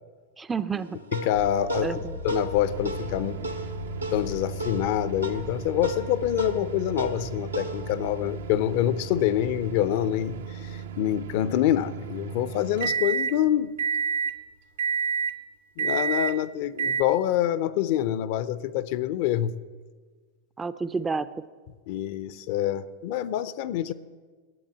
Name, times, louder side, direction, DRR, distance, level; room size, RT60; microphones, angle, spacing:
voice 1, 0.4-1.0 1.8-2.2 20.6-21.3, right 5 dB, 15° right, 13 dB, 0.4 m, -30 dB
sound 1, 0.7-9.5, right 2 dB, 80° right, 1.1 m, -36 dB
voice 2, 1.1-3.6 4.1-13.7 15.8-19.6 21.9-23.9, left 12 dB, 50° left, 15 dB, 0.5 m, -26 dB
sound 2, 1.3-14.0 14.5-14.6, left 3 dB, 90° left, 1.1 m, -42 dB
sound 3, 2.6-13.4 13.8-14.4 14.8-15.4 15.8-16.4 16.8-17.0, right 6 dB, 60° right, 0.6 m, -32 dB
11.0 x 8.6 x 8.7 m, 1.5 s
figure-of-eight pair, 90°, 0 cm